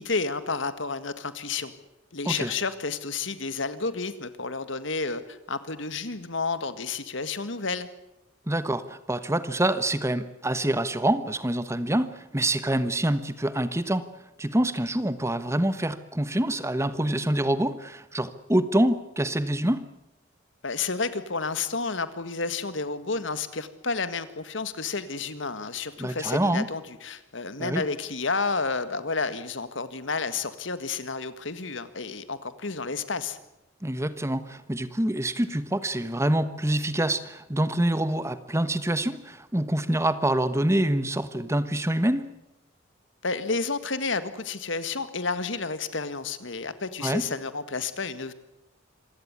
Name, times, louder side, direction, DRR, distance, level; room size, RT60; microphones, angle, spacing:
voice 1, 0.0-1.7 2.1-7.9 20.6-33.4 43.2-48.3, left 4 dB, 70° left, 12 dB, 1.8 m, -31 dB
voice 2, 8.5-14.1 14.4-19.9 26.0-26.7 27.6-27.8 33.8-42.3 47.0-47.2, right 1 dB, 15° right, 13 dB, 1.1 m, -26 dB
26.0 x 16.0 x 9.6 m, 0.90 s
head